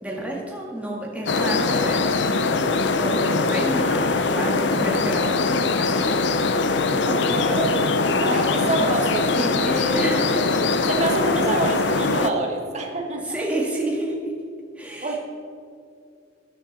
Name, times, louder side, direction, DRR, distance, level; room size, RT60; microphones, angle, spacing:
voice 1, 0.0-6.3 8.6-8.9 9.4-9.6 9.9-10.6 13.2-14.3 14.8-15.2, right 1 dB, 5° right, -2 dB, 1.9 m, -30 dB
sound 1, 1.3-12.3, left 3 dB, 70° left, 0.7 m, -22 dB
voice 2, 7.1-10.2 10.9-13.2 15.0-15.2, right 2 dB, 35° right, 1 dB, 1.6 m, -27 dB
13.5 x 10.5 x 4.2 m, 2.4 s
head